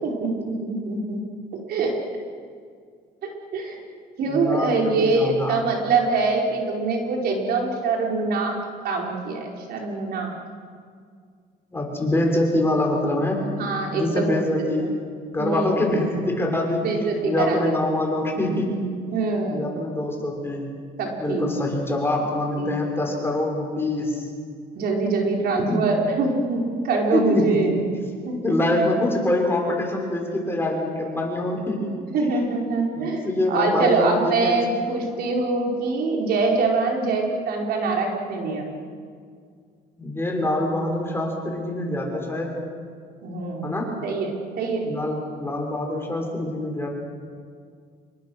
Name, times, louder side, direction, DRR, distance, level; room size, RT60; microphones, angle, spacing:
voice 1, 0.0-1.2 1.7-1.9 3.5-3.8 4.2-8.6 8.8-10.3 13.6-14.5 14.7-14.8 15.4-15.7 16.8-17.6 19.1-19.7 21.0-21.5 22.6-22.7 24.7-27.7 28.2-28.8 32.1-33.2 33.5-38.7 43.2-43.7 44.0-44.9, right 3 dB, 65° right, 0 dB, 4.9 m, -24 dB
voice 2, 4.3-4.7 5.0-5.6 11.7-13.4 13.9-14.9 15.3-16.8 17.2-18.9 19.5-20.7 21.2-24.2 25.6-25.8 27.1-27.8 28.4-31.9 32.2-32.3 33.0-34.6 40.0-42.6 43.6-43.9 44.8-46.9, left 1 dB, 15° left, 0 dB, 6.1 m, -25 dB
27.5 x 23.0 x 6.5 m, 2.1 s
cardioid pair, 110°, 17 cm